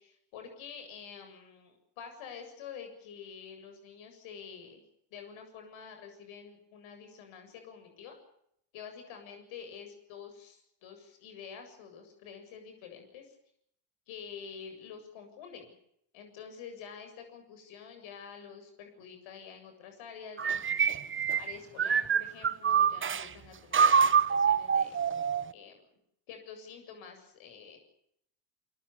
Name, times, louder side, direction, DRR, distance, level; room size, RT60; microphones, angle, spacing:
voice 1, 0.0-4.8 5.1-8.2 8.7-13.4 14.1-15.7 16.1-20.9 21.4-25.0 25.5-25.8 26.3-27.8, left 7 dB, 70° left, 5 dB, 7.7 m, -48 dB
sound 1, 20.4-23.3 23.7-25.5, right 6 dB, 25° right, 1.0 m, -26 dB
28.5 x 20.5 x 7.0 m, 0.74 s
supercardioid pair, 100°, 50 cm